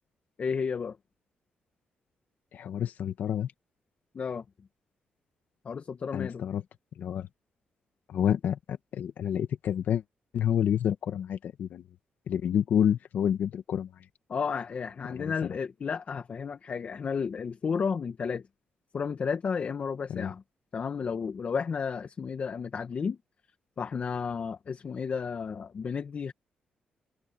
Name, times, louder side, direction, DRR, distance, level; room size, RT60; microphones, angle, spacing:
voice 1, 0.4-1.0 4.1-4.4 5.7-6.4 14.3-18.4 18.9-20.4 20.7-23.2 23.8-26.3, left 6 dB, 50° left, 1.8 m, -32 dB
voice 2, 2.5-3.5 6.1-6.6 7.0-7.3 8.1-10.0 10.3-11.8 12.3-13.9 15.2-15.3 20.1-20.3, left 9 dB, 75° left, 2.0 m, -28 dB
cardioid pair, 80°, 3 cm